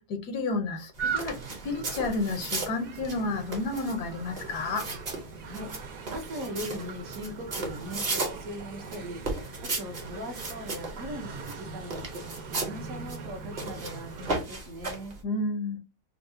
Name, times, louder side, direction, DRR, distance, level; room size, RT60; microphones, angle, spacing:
voice 1, 0.0-1.4 1.6-4.9 15.2-15.8, left 3 dB, 90° left, 1.4 m, -31 dB
sound 1, 0.9-15.2, right 3 dB, 40° right, 0.6 m, -37 dB
sound 2, 1.0-14.3, right 5 dB, 90° right, 1.5 m, -41 dB
voice 2, 5.4-12.3 12.6-15.2, equal, 65° right, 1.1 m, -40 dB
4.5 x 2.0 x 2.6 m
omnidirectional pair, 1.6 m